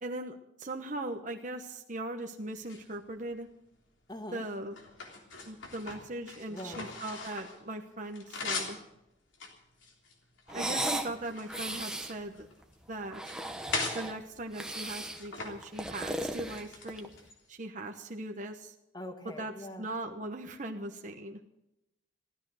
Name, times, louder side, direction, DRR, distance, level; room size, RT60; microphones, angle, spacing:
voice 1, 0.0-3.5 4.3-4.8 5.4-8.8 10.5-12.5 12.9-13.3 13.9-17.1 17.5-18.7 19.4-21.4, right 2 dB, 40° right, 3 dB, 1.0 m, -39 dB
sound 1, 2.5-3.5 4.1-7.6 7.9-8.8 9.3-10.6 11.1-12.7 13.1-14.0 14.7-15.5 15.8-16.1 16.4-17.4, left 3 dB, 80° left, 3.4 m, -40 dB
voice 2, 4.1-4.4 6.5-6.9 18.9-19.9, left 1 dB, 20° left, 6 dB, 1.5 m, -42 dB
sound 2, 10.5-11.1 11.5-12.1 13.0-14.2 14.5-15.2 15.6-17.1, right 1 dB, 5° right, 1.0 m, -36 dB
16.0 x 13.0 x 6.3 m, 0.87 s
head